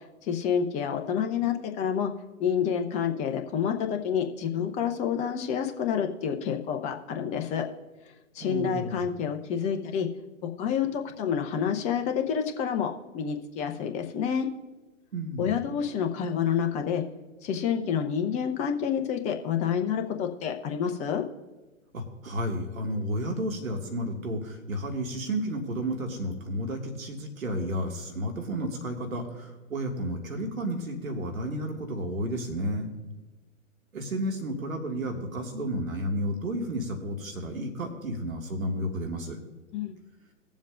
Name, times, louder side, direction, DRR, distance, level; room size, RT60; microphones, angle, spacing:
voice 1, 0.0-2.1 2.4-7.6 8.3-10.1 10.4-14.5 15.4-17.0 17.4-21.2 39.7-40.0, left 7 dB, 15° left, 5 dB, 0.7 m, -28 dB
voice 2, 8.4-9.0 15.1-15.5 21.9-32.9 33.9-39.4, equal, 75° right, 2 dB, 2.1 m, -32 dB
21.0 x 7.3 x 2.6 m, 1.2 s
figure-of-eight pair, 120°, 41 cm